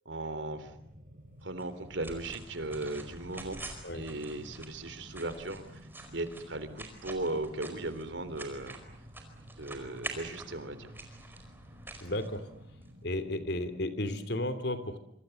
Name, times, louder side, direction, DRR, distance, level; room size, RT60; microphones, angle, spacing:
voice 1, 0.1-0.7 1.4-3.6 3.9-5.8 6.1-8.8 9.6-10.9, right 2 dB, 90° right, 12 dB, 3.5 m, -37 dB
sound 1, 0.5-13.8, equal, 50° right, 5.8 m, -53 dB
sound 2, 1.6-12.9, right 2 dB, 10° right, 4.7 m, -47 dB
voice 2, 12.0-12.5 13.0-15.0, left 1 dB, 65° left, 11 dB, 3.2 m, -33 dB
26.5 x 26.0 x 8.0 m, 0.70 s
head